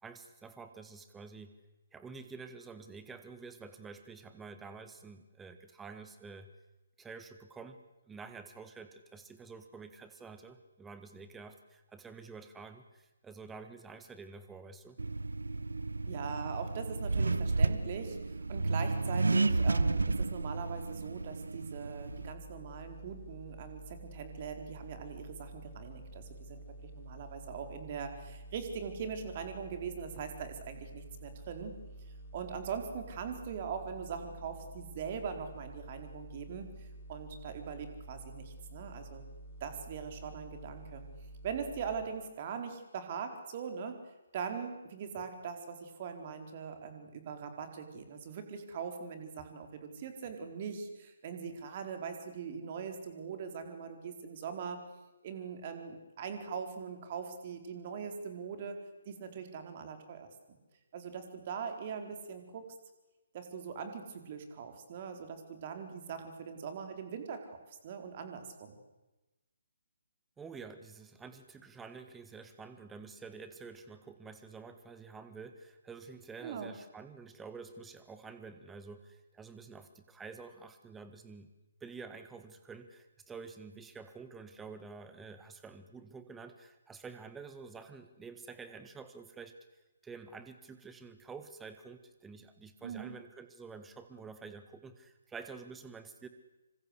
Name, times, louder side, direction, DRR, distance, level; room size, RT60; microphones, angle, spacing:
voice 1, 0.0-1.5 1.9-6.5 7.0-7.8 8.1-15.0 70.4-81.5 81.8-96.3, right 4 dB, 10° right, 9 dB, 1.8 m, -49 dB
Accelerating revving vroom, 15.0-22.3, right 3 dB, 70° right, 1.0 m, -32 dB
voice 2, 16.1-26.6 27.0-31.8 32.3-39.2 39.6-41.0 41.4-44.0 44.3-54.8 55.2-58.8 59.1-60.6 60.9-62.7 63.3-67.6 67.8-68.8 76.4-76.7 92.8-93.1, right 6 dB, 35° right, 6 dB, 4.4 m, -41 dB
sound 1, 22.1-42.0, right 1 dB, 35° left, 4.6 m, -49 dB
27.0 x 25.5 x 8.2 m, 1.1 s
figure-of-eight pair, 140°, 0 cm